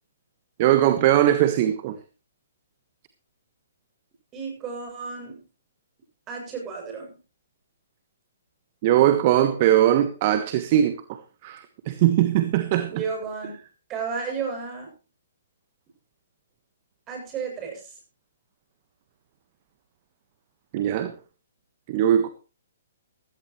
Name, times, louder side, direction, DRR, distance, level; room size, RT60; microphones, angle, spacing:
voice 1, 0.6-1.9 8.8-11.0 11.4-11.6 11.9-13.0 20.7-21.1 21.9-22.3, right 12 dB, 40° right, 1.4 m, -20 dB
voice 2, 4.3-5.4 6.3-7.2 12.9-13.6 13.9-14.9 17.1-18.0, right 5 dB, 25° right, 7.8 m, -33 dB
16.5 x 15.0 x 3.2 m
hypercardioid pair, 135°, 0 cm